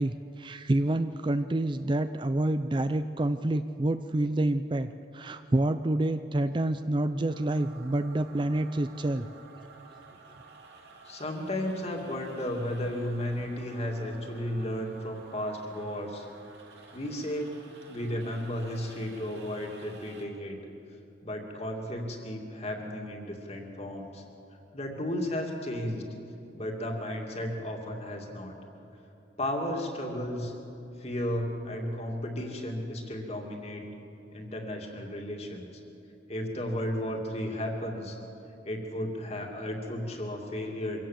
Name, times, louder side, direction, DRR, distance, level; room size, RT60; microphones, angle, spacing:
voice 1, 0.0-9.3, right 1 dB, 25° right, 10 dB, 0.4 m, -28 dB
sound 1, 7.3-20.3, right 3 dB, 65° right, 3.0 m, -52 dB
voice 2, 11.0-16.3 16.9-17.5 17.9-20.6 21.2-24.2 24.7-26.1 26.5-28.5 29.4-30.5 31.0-33.8 34.3-35.7 36.3-38.2 38.6-41.0, left 1 dB, 35° left, 1 dB, 2.6 m, -34 dB
24.5 x 17.0 x 7.5 m, 2.8 s
head